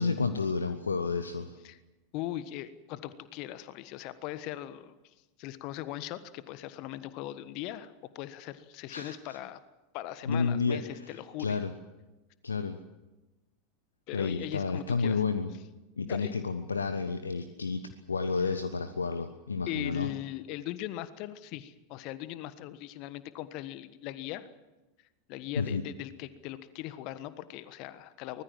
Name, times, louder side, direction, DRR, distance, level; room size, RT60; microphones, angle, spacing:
voice 1, 0.0-1.6 8.9-9.4 10.3-11.7 12.4-12.8 14.1-15.5 16.0-17.8 18.1-20.1 25.6-25.8, left 4 dB, 75° left, 9 dB, 1.2 m, -31 dB
voice 2, 2.1-4.9 5.4-9.6 9.9-11.6 14.1-15.2 16.1-16.3 19.7-24.5 25.3-28.4, left 14 dB, 45° left, 14 dB, 1.3 m, -39 dB
24.0 x 20.5 x 7.5 m, 1.1 s
figure-of-eight pair, 85°, 0 cm